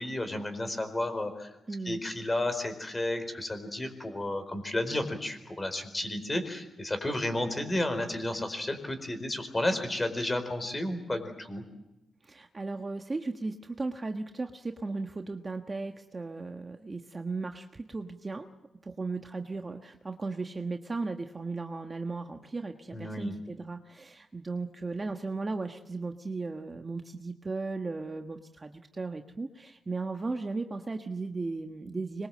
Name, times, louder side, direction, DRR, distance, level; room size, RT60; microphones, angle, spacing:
voice 1, 0.0-1.5 1.8-11.6 22.9-23.4, left 1 dB, 20° left, 8 dB, 4.5 m, -32 dB
voice 2, 1.7-2.0 12.2-18.5 18.8-32.3, right 3 dB, 25° right, 5 dB, 1.3 m, -36 dB
25.5 x 22.5 x 7.7 m, 0.95 s
wide cardioid pair, 120°, 0 cm